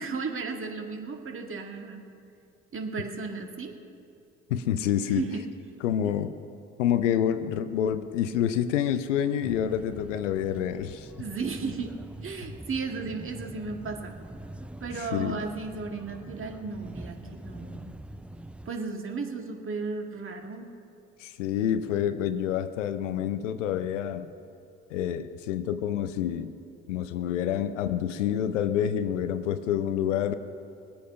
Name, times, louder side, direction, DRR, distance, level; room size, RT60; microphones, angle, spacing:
voice 1, 0.0-2.0 2.7-3.7 5.1-5.4 6.0-6.1 11.2-11.9 12.2-14.2 14.8-18.0 18.7-20.7, right 4 dB, 35° right, 3 dB, 1.9 m, -34 dB
voice 2, 4.5-5.2 5.8-6.4 6.8-11.1 14.9-15.4 21.2-24.3 24.9-26.6 26.9-30.3, left 10 dB, 85° left, 10 dB, 0.6 m, -28 dB
sound 1, 9.4-18.7, right 1 dB, 5° right, 0.4 m, -44 dB
20.0 x 8.6 x 5.7 m, 2.5 s
hypercardioid pair, 60°, 36 cm